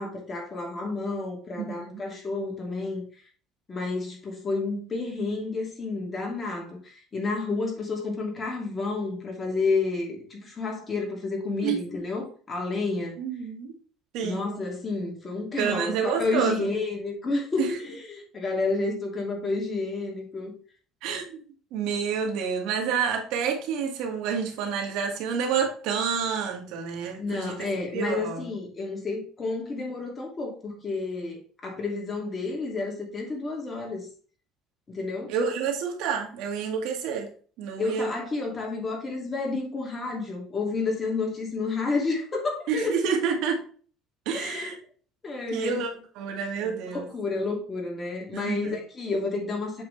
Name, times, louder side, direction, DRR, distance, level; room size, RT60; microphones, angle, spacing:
voice 1, 0.0-3.0 3.7-13.2 14.2-20.5 27.2-34.1 34.9-35.3 37.8-43.0 44.3-44.7 45.2-45.8 46.6-49.8, left 3 dB, 25° left, 2.8 m, -30 dB
voice 2, 1.6-2.0 11.6-11.8 13.2-13.8 14.1-14.4 15.6-16.7 17.6-17.7 21.0-21.4 21.7-27.6 27.9-28.5 35.3-37.3 37.6-38.1 42.7-43.6 44.3-44.8 45.5-45.9 46.2-47.1 48.3-48.8, right 6 dB, 75° right, 2.0 m, -28 dB
7.9 x 4.9 x 3.4 m
cardioid pair, 130°, 0 cm